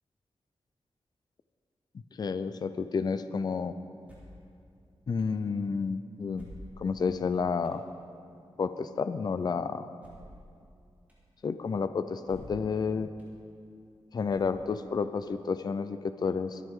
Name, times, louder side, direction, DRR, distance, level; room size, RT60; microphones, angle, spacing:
voice 1, 2.2-3.7 5.1-6.4 6.8-7.8 8.6-9.9 11.4-13.1 14.1-16.6, left 5 dB, 40° left, 11 dB, 0.4 m, -30 dB
sound 1, 4.0-4.4 5.2-5.3 6.3-7.0 7.6-7.8 10.0-10.4 11.1-11.2 12.2-12.7 13.2-13.3 14.3-14.8, equal, 15° right, 2.9 m, -50 dB
23.5 x 9.2 x 3.7 m, 2.4 s
wide cardioid pair, 180°, 10 cm